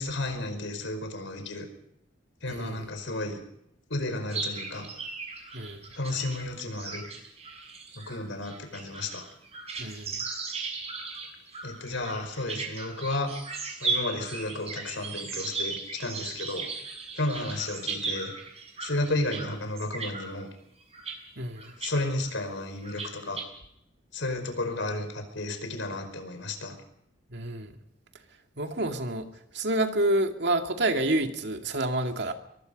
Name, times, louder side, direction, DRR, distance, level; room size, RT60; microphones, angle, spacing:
voice 1, 0.0-1.7 2.4-3.4 3.9-4.9 6.0-7.1 8.0-9.2 11.6-13.3 13.8-16.7 17.2-18.3 18.8-20.5 21.8-23.4 24.1-26.8, left 2 dB, 90° left, 7 dB, 5.0 m, -32 dB
voice 2, 2.5-2.9 5.5-5.9 9.8-10.1 21.4-21.8 27.3-27.7 28.6-29.3 29.5-32.3, right 1 dB, 65° right, 4 dB, 2.3 m, -28 dB
sound 1, 4.3-19.5 19.8-20.2 20.8-21.2 21.6-21.9 22.2-22.3 22.8-23.4, right 4 dB, 35° right, 6.6 m, -36 dB
24.5 x 23.0 x 5.4 m, 0.78 s
head